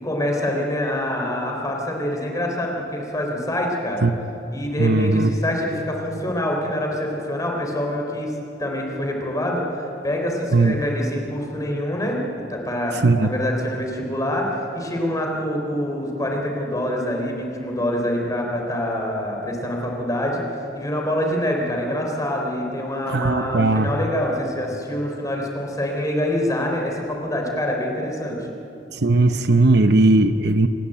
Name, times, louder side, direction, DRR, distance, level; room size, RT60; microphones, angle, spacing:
voice 1, 0.0-4.1 4.5-8.3 8.6-12.2 12.5-28.4, left 1 dB, 20° left, 0 dB, 3.7 m, -25 dB
voice 2, 4.8-5.3 10.5-10.8 13.0-13.3 23.1-23.9 28.9-30.7, right 2 dB, 65° right, 9 dB, 0.8 m, -17 dB
27.0 x 12.0 x 9.1 m, 3.0 s
head